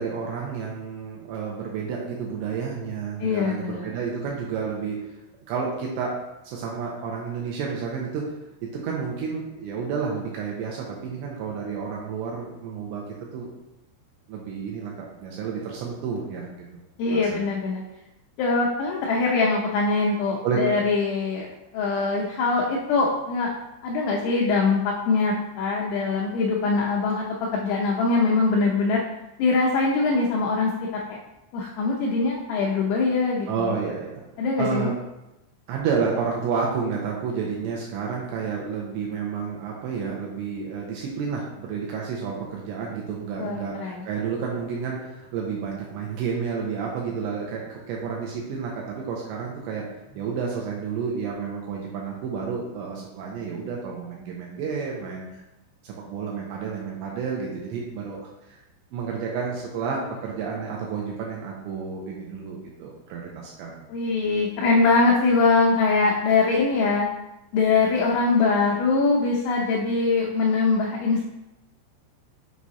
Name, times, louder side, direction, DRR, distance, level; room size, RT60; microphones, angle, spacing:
voice 1, 0.0-5.0 5.5-6.1 6.5-8.3 8.6-13.0 13.3-13.5 14.3-14.9 15.2-16.6 17.1-17.5 20.4-20.7 33.5-34.2 34.6-35.0 35.7-49.9 50.1-55.3 55.8-58.2 58.5-58.6 58.9-63.9, right 5 dB, 85° right, -2 dB, 2.6 m, -30 dB
voice 2, 3.2-4.0 17.0-17.8 18.4-21.5 21.7-23.5 23.8-27.3 27.5-29.0 29.4-31.2 31.5-33.7 34.4-34.9 43.4-44.1 63.9-67.1 67.5-71.3, left 4 dB, 85° left, -2 dB, 2.4 m, -22 dB
7.2 x 4.8 x 2.8 m, 0.95 s
omnidirectional pair, 5.7 m